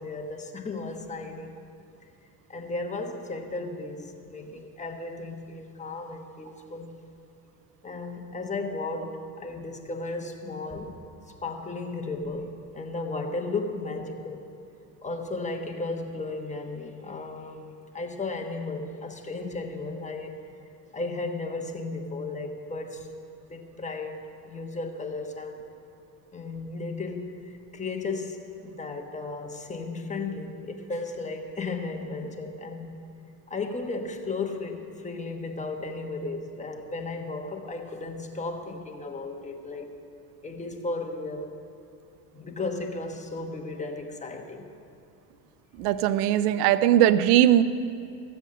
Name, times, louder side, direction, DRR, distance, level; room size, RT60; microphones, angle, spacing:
voice 1, 0.0-1.6 2.5-7.0 7.8-11.0 11.4-14.5 15.0-20.3 20.9-23.1 23.5-24.2 24.4-25.6 26.3-33.0 33.5-39.9 40.4-41.6 42.3-44.7, left 3 dB, 15° left, 3 dB, 1.2 m, -35 dB
voice 2, 45.8-47.6, right 12 dB, 80° right, 15 dB, 0.6 m, -20 dB
14.5 x 7.9 x 6.4 m, 2.6 s
supercardioid pair, 110°, 44 cm